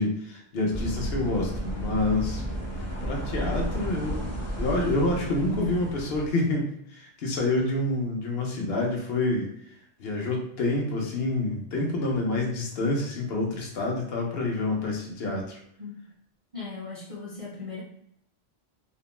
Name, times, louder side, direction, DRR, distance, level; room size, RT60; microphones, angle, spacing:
voice 1, 0.0-2.4 3.0-4.3 4.6-9.5 10.0-15.4, left 2 dB, 70° left, -1 dB, 0.9 m, -27 dB
sound 1, 0.7-6.3, equal, 20° left, 0.4 m, -32 dB
voice 2, 16.5-17.8, left 4 dB, 45° right, -4 dB, 0.4 m, -38 dB
2.5 x 2.1 x 3.0 m, 0.71 s
omnidirectional pair, 1.1 m